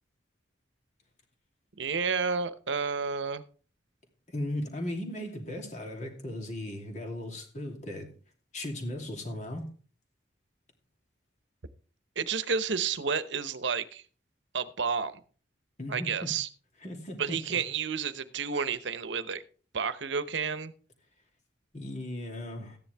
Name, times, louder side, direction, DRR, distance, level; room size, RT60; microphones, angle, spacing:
voice 1, 1.8-3.4 12.2-14.0 14.5-15.2 15.9-16.5 17.2-19.4 19.7-20.7, right 5 dB, 80° right, 0.9 m, -31 dB
voice 2, 4.3-8.1 8.5-9.7 15.8-16.3 16.8-17.6 21.7-22.8, left 1 dB, 40° left, 2.8 m, -37 dB
14.0 x 10.0 x 3.4 m
head